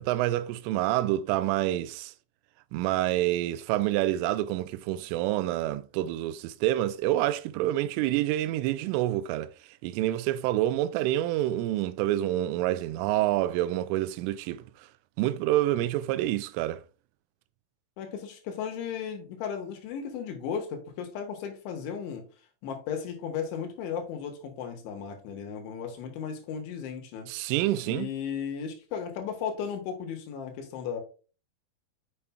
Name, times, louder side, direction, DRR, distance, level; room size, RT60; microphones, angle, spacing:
voice 1, 0.0-2.1 2.7-9.5 9.8-14.6 15.2-16.8 27.3-28.1, right 14 dB, 90° right, 3.1 m, -27 dB
voice 2, 18.0-22.3 22.6-27.3 27.9-31.0, left 7 dB, 75° left, 3.6 m, -35 dB
6.9 x 6.7 x 2.2 m
omnidirectional pair, 5.6 m